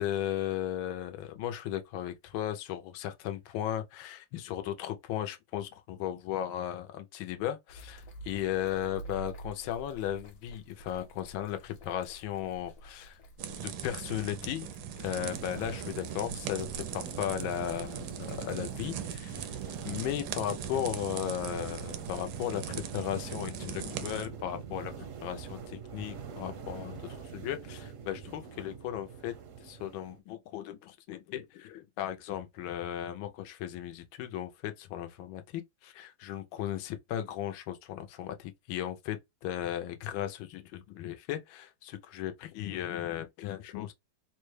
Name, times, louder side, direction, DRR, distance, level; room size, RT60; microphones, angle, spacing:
voice 1, 0.0-13.2 13.6-14.7 15.0-19.6 19.8-43.9, left 11 dB, 85° left, 1.4 m, -36 dB
sound 1, 7.7-22.5, right 1 dB, 65° left, 1.5 m, -50 dB
sound 2, 13.4-24.3, right 8 dB, 80° right, 1.3 m, -40 dB
sound 3, 15.1-30.2, right 6 dB, 65° right, 0.8 m, -44 dB
3.9 x 2.2 x 3.1 m
omnidirectional pair, 2.1 m